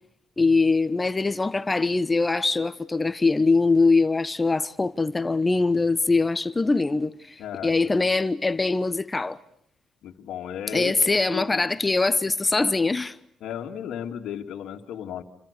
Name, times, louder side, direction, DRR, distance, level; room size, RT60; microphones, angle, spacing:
voice 1, 0.4-9.4 10.7-13.2, left 3 dB, 20° left, 1.1 m, -22 dB
voice 2, 7.4-8.1 10.0-11.0 11.3-11.6 13.4-15.2, left 9 dB, 80° left, 2.4 m, -34 dB
29.0 x 25.5 x 6.7 m
cardioid pair, 90°, 0 cm